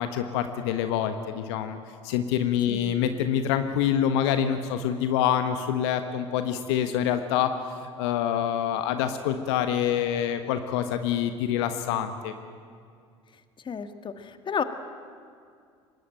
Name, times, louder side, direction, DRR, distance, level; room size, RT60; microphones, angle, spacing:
voice 1, 0.0-1.8 2.0-7.5 7.8-12.3, left 9 dB, 65° left, 8 dB, 1.3 m, -26 dB
voice 2, 13.6-14.6, left 6 dB, 35° left, 9 dB, 1.8 m, -32 dB
24.0 x 20.0 x 9.1 m, 2.2 s
hypercardioid pair, 70°, 15 cm